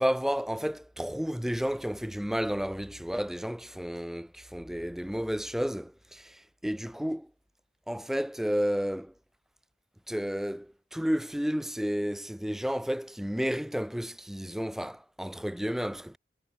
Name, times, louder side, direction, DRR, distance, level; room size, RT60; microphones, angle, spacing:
voice 1, 0.0-7.3 7.9-9.1 10.1-16.2, equal, ahead, 0.3 m, -31 dB
head